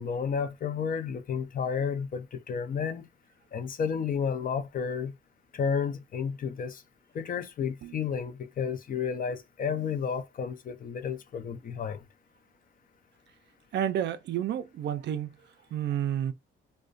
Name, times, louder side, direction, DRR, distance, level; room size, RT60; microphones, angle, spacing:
voice 1, 0.0-3.1 3.5-5.1 5.5-6.8 7.1-12.0, left 6 dB, 45° left, 0.5 m, -31 dB
voice 2, 13.7-15.3 15.7-16.3, right 10 dB, 60° right, 0.4 m, -30 dB
2.4 x 2.1 x 2.5 m
cardioid pair, 90°, 20 cm